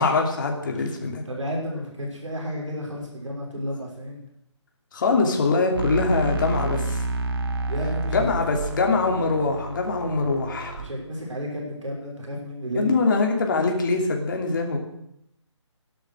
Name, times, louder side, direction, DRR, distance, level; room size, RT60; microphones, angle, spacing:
voice 1, 0.0-1.2 4.9-7.0 8.1-10.9 12.7-14.8, left 3 dB, 40° left, 2 dB, 3.0 m, -23 dB
voice 2, 1.3-4.2 7.7-8.4 10.8-12.9, equal, 80° right, -1 dB, 6.1 m, -32 dB
sound 1, 5.7-10.8, right 2 dB, 50° right, 2.1 m, -29 dB
15.0 x 11.5 x 6.5 m, 0.75 s
figure-of-eight pair, 160°, 16 cm